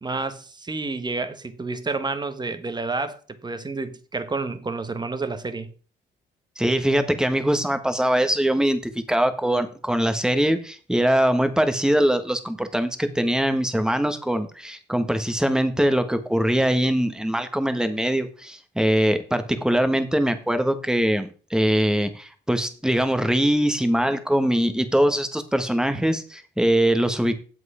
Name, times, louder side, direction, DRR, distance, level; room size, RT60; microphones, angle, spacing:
voice 1, 0.0-5.7, right 3 dB, 20° right, 1.4 m, -30 dB
voice 2, 6.6-27.3, right 1 dB, 5° right, 1.5 m, -22 dB
7.9 x 7.9 x 5.0 m
cardioid pair, 90°, 20 cm